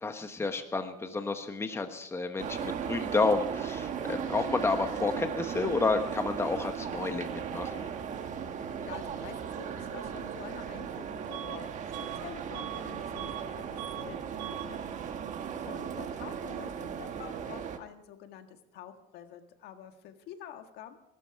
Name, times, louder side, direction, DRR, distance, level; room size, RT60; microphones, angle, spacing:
voice 1, 0.0-7.9, left 3 dB, 15° left, 7 dB, 1.2 m, -30 dB
sound 1, 2.4-17.8, right 7 dB, 45° right, 1.5 m, -37 dB
voice 2, 8.6-11.7 12.2-14.8 15.6-21.0, left 9 dB, 65° left, 7 dB, 1.7 m, -47 dB
Bus / Alarm, 11.3-11.6 11.9-13.5 13.7-14.1 14.4-14.7, right 13 dB, 70° right, 1.4 m, -42 dB
20.5 x 12.5 x 4.7 m, 0.81 s
cardioid pair, 120°, 18 cm